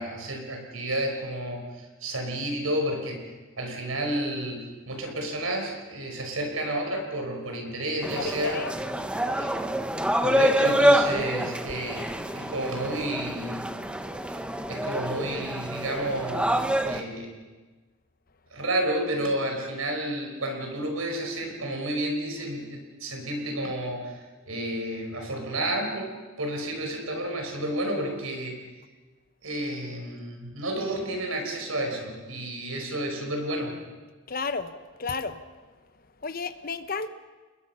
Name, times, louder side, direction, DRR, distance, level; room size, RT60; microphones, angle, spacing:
voice 1, 0.0-3.3 3.6-8.6 9.3-9.6 10.2-13.7 14.3-14.4 14.7-17.4 18.5-28.6 29.4-33.8, right 1 dB, 85° right, 3 dB, 5.2 m, -31 dB
sound 1, 8.0-17.0, right 1 dB, 5° right, 0.8 m, -26 dB
voice 2, 8.1-8.7 34.3-34.7 35.0-35.4 36.2-37.1, left 4 dB, 45° left, 11 dB, 1.0 m, -32 dB
29.5 x 21.0 x 5.8 m, 1.3 s
head